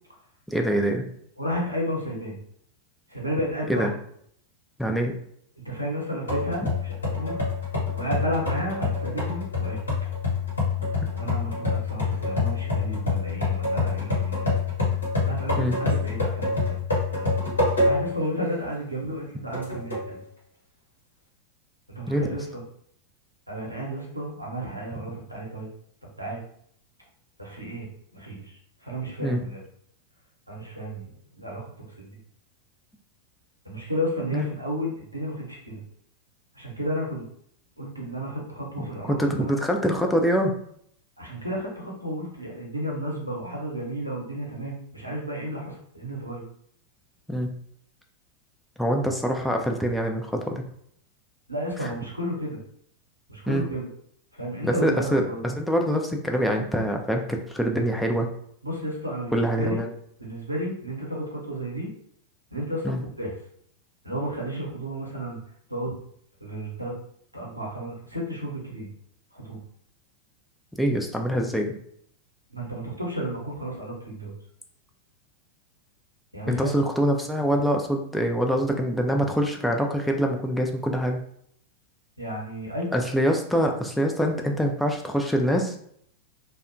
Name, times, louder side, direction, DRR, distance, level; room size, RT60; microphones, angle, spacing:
voice 1, 0.5-1.0 3.7-3.9 4.8-5.2 15.6-15.8 22.1-22.3 24.9-25.0 29.2-29.4 34.3-34.5 38.8-40.5 47.3-47.5 48.8-50.6 51.8-51.9 53.5-53.6 54.6-58.3 59.3-59.9 62.8-63.0 70.7-71.7 76.5-81.2 82.9-85.7, equal, ahead, 1 dB, 0.3 m, -25 dB
voice 2, 1.4-2.4 3.1-3.9 5.6-7.4 8.0-9.9 11.1-14.5 15.2-16.8 17.1-17.4 17.8-20.2 21.9-22.6 23.5-25.7 26.2-26.4 27.4-29.6 30.5-31.1 31.3-31.7 32.0-32.2 33.6-35.8 36.5-37.3 37.8-39.6 41.2-46.5 51.5-52.6 53.3-53.9 54.3-55.4 58.6-59.8 60.2-61.9 62.5-63.3 64.0-65.4 65.7-66.0 66.4-66.9 67.3-68.9 69.3-69.6 72.5-74.3 76.3-76.7 82.2-82.9, equal, 85° right, -3 dB, 0.7 m, -32 dB
sound 1, 6.3-18.2 18.7-18.8 19.5-20.1, left 3 dB, 80° left, 0.9 m, -26 dB
2.7 x 2.1 x 2.5 m, 0.66 s
figure-of-eight pair, 90°, 0 cm